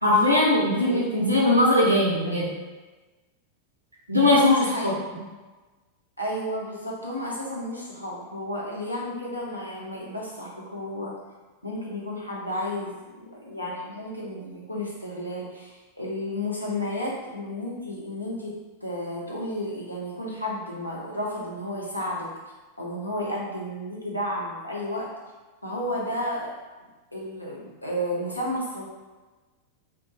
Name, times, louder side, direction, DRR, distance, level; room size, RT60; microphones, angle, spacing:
voice 1, 0.0-2.5 4.1-5.2, left 1 dB, 85° right, -4 dB, 0.6 m, -20 dB
voice 2, 4.5-4.9 6.2-11.1 11.6-15.7 16.0-18.5 18.8-22.3 22.8-25.1 25.6-26.5 27.1-28.8, left 1 dB, 85° left, -4 dB, 0.6 m, -32 dB
2.3 x 2.2 x 2.7 m, 1.2 s
figure-of-eight pair, 90°, 0 cm